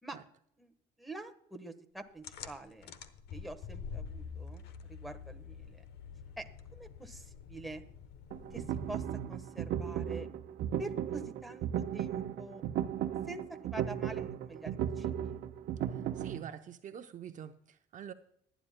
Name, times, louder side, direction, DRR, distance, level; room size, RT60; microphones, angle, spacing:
voice 1, 1.0-3.0 3.3-5.8 6.4-7.8 8.5-10.3 10.8-11.7 11.9-12.6 13.2-15.4, right 2 dB, ahead, 4 dB, 1.3 m, -46 dB
sound 1, 2.2-9.4, left 6 dB, 75° left, 1.0 m, -47 dB
sound 2, 8.3-16.4, right 10 dB, 75° right, 0.9 m, -36 dB
voice 2, 15.9-18.1, right 9 dB, 50° right, 8 dB, 0.7 m, -46 dB
21.5 x 10.0 x 2.2 m, 0.68 s
cardioid pair, 110°, 17 cm